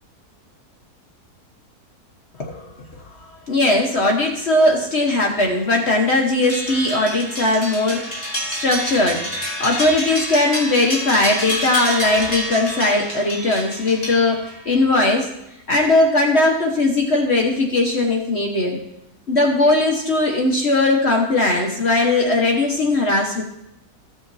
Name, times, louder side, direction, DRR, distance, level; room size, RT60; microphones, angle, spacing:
voice 1, 2.4-2.7 3.0-3.1 3.5-9.3 9.6-15.3 15.7-18.8 19.3-23.4, left 2 dB, 45° left, 0 dB, 1.3 m, -19 dB
sound 1, 6.5-14.7, equal, 25° left, 2.2 m, -28 dB
15.0 x 7.0 x 2.7 m, 0.83 s
omnidirectional pair, 1.7 m